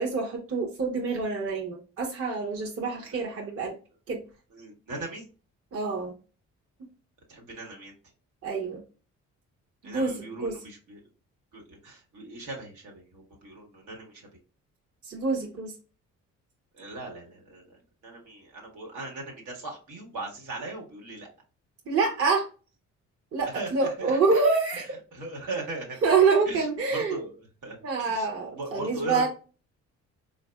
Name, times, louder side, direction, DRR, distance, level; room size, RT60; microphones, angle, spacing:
voice 1, 0.0-3.8 4.1-4.2 5.7-6.1 8.4-8.8 9.8-10.5 15.0-15.7 21.9-22.5 23.3-24.9 26.0-27.2 27.8-29.3, right 4 dB, 50° right, 0 dB, 0.9 m, -26 dB
voice 2, 4.5-5.2 7.3-7.9 9.8-11.0 11.5-14.3 16.7-21.3 23.4-24.4 24.7-24.8 25.1-26.0 26.4-26.7 26.9-28.3 28.5-29.3, right 2 dB, 80° right, 0 dB, 1.4 m, -39 dB
4.1 x 2.5 x 2.2 m, 0.36 s
cardioid pair, 90°, 30 cm